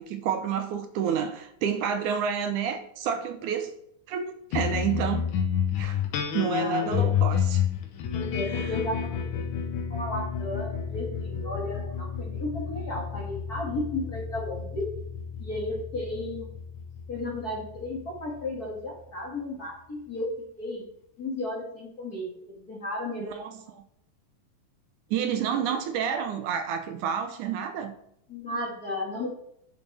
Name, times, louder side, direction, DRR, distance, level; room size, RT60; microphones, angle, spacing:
voice 1, 0.0-3.7 4.1-5.3 5.8-6.0 6.3-7.6 8.5-8.7 23.2-23.8 25.1-27.9, right 7 dB, 75° right, 2.3 m, -29 dB
sound 1, 4.5-19.2, left 8 dB, 80° left, 2.6 m, -30 dB
voice 2, 6.5-7.1 8.1-14.9 15.4-16.5 17.1-20.8 21.2-23.4 28.3-29.3, left 1 dB, 30° left, 2.4 m, -34 dB
10.5 x 7.1 x 3.5 m
omnidirectional pair, 3.6 m